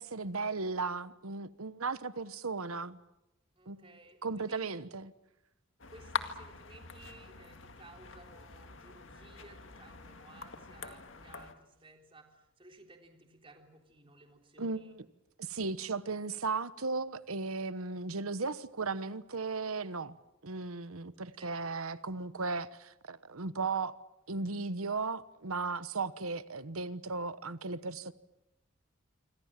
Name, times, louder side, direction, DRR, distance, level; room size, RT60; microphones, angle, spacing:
voice 1, 0.0-3.0 3.7-5.1 14.6-15.0 15.4-20.2 20.4-24.0 24.3-28.1, right 4 dB, 85° right, 1.1 m, -36 dB
voice 2, 3.5-4.6 5.9-15.0 21.2-21.7, right 2 dB, 25° right, 3.4 m, -57 dB
sound 1, 5.8-11.5, left 5 dB, 60° left, 2.0 m, -44 dB
27.0 x 25.5 x 7.4 m
head